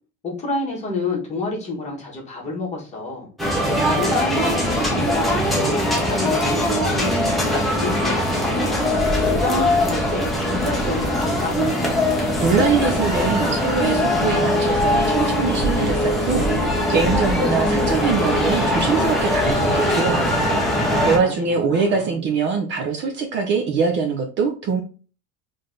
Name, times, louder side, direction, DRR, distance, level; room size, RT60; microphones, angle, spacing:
voice 1, 0.2-3.3 4.0-8.8 9.3-11.6 20.8-22.2, left 2 dB, 20° left, -2 dB, 1.4 m, -29 dB
sound 1, 3.4-21.2, left 1 dB, ahead, 0.8 m, -21 dB
voice 2, 12.4-20.4 21.0-24.8, right 5 dB, 35° right, 4 dB, 0.6 m, -23 dB
3.8 x 3.4 x 3.8 m, 0.35 s
cardioid pair, 180°, 31 cm